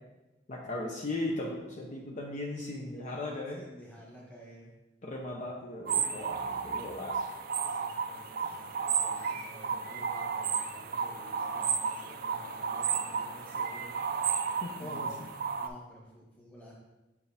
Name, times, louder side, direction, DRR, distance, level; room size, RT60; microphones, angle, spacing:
voice 1, 0.5-3.6 5.0-7.3 14.6-15.1, left 2 dB, 40° left, -1 dB, 0.6 m, -37 dB
voice 2, 3.5-4.7 6.3-6.6 7.5-13.9 14.5-15.2 15.6-16.7, equal, 10° left, -4 dB, 1.3 m, -52 dB
sound 1, 5.9-15.7, right 6 dB, 50° right, 0.4 m, -33 dB
6.7 x 4.9 x 3.4 m, 1.1 s
head